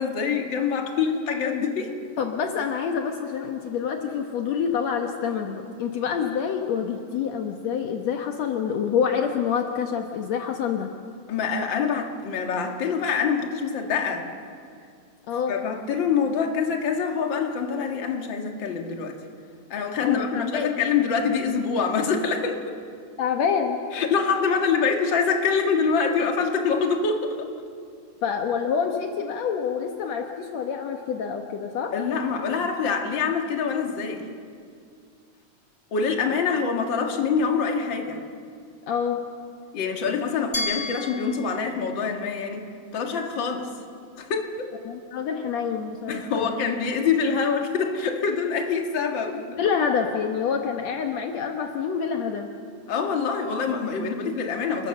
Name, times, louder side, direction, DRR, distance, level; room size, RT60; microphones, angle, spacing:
voice 1, 0.0-2.0 11.3-14.3 15.5-19.2 19.7-22.6 23.9-27.4 31.9-34.3 35.9-38.2 39.7-42.7 42.9-43.7 44.2-44.7 46.1-49.6 52.9-54.9, left 5 dB, 45° left, 3 dB, 2.4 m, -25 dB
voice 2, 2.2-11.0 15.3-15.6 20.0-20.7 23.2-23.9 28.2-32.0 38.9-39.3 44.9-46.5 49.6-52.5, left 7 dB, 70° left, 4 dB, 2.3 m, -27 dB
Glass, 40.5-43.4, left 2 dB, 25° left, 1.2 m, -35 dB
29.5 x 22.0 x 6.7 m, 2.3 s
omnidirectional pair, 3.3 m